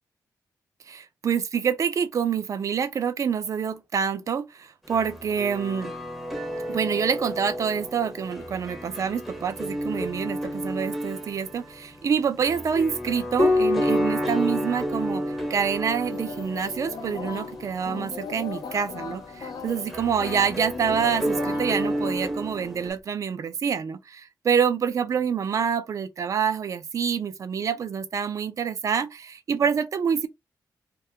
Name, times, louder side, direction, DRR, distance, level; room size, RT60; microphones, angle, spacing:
voice 1, 0.9-5.9 6.7-15.2 15.5-30.3, right 7 dB, 50° right, 0.4 m, -27 dB
sound 1, 4.9-22.9, right 1 dB, ahead, 0.6 m, -32 dB
Piano, 13.4-18.2 19.9-20.7, left 3 dB, 45° left, 1.0 m, -29 dB
sound 2, 16.1-22.2, left 5 dB, 70° left, 0.5 m, -38 dB
2.3 x 2.2 x 2.7 m
wide cardioid pair, 135°, 7 cm